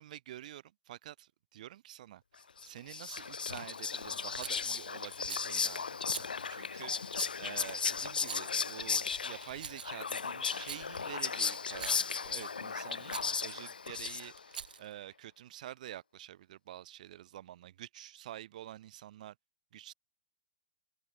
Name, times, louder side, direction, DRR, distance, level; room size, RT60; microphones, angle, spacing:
voice 1, 0.0-19.3 19.7-19.9, right 13 dB, 55° right, 6.2 m, -48 dB
Whispering, 2.6-14.6, left 5 dB, 75° left, 0.7 m, -36 dB
Rattle, 4.4-4.7 5.2-5.5 6.1-6.3 7.1-7.4 8.1-8.6 9.3-10.0 10.5-10.8 11.7-12.1 13.1-13.3 14.4-14.9, right 7 dB, 70° right, 0.4 m, -44 dB
open air
figure-of-eight pair, 110°, 5 cm